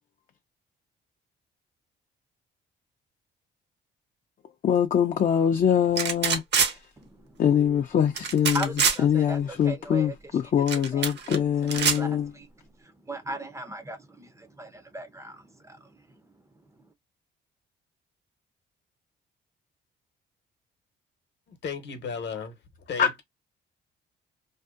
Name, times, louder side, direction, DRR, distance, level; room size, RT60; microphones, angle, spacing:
voice 1, 4.6-6.8 7.4-8.7 9.0-12.3 23.0-23.1, left 8 dB, 40° left, 0.4 m, -23 dB
sound 1, 6.0-6.7 8.2-9.0 10.7-11.4 11.7-12.0, right 6 dB, 60° right, 0.8 m, -24 dB
voice 2, 7.0-7.4 8.5-10.1 10.9-11.4 11.8-12.5 12.8-16.3, right 1 dB, 15° right, 0.5 m, -39 dB
voice 3, 21.5-22.6 22.9-23.2, left 5 dB, 65° left, 0.9 m, -35 dB
2.6 x 2.1 x 2.4 m
cardioid pair, 90°, 20 cm